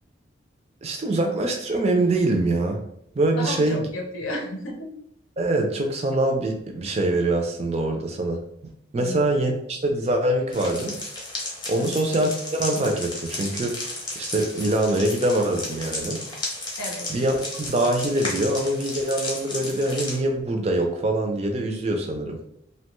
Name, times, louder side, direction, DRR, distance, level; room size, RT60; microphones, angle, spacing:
voice 1, 0.8-2.8 3.2-3.9 5.4-8.4 8.9-11.0 11.7-13.8 14.2-16.2 17.1-22.4, right 1 dB, 30° right, 3 dB, 0.4 m, -24 dB
voice 2, 3.3-4.9 9.0-9.3 11.7-12.0 16.8-17.1, left 1 dB, 90° left, 1 dB, 0.7 m, -32 dB
sound 1, 10.5-20.1, left 2 dB, 20° left, 0.7 m, -34 dB
2.7 x 2.2 x 2.9 m, 0.73 s
head